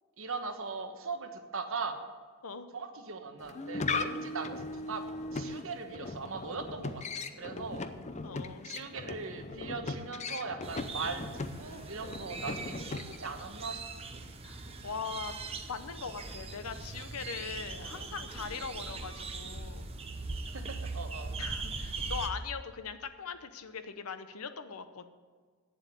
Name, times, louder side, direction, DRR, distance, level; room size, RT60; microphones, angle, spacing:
voice 1, 0.2-2.0 2.7-5.0 5.3-7.9 8.6-13.8 17.7-17.9 20.5-21.4, right 4 dB, 60° right, 5 dB, 1.2 m, -40 dB
sound 1, 3.4-13.4, left 3 dB, 30° left, 0.5 m, -38 dB
voice 2, 8.2-8.7 14.4-15.3 15.7-19.9 21.4-25.1, left 6 dB, 75° left, 10 dB, 0.8 m, -41 dB
sound 2, 10.6-22.3, right 3 dB, 25° right, 0.8 m, -40 dB
8.8 x 7.6 x 8.3 m, 1.5 s
head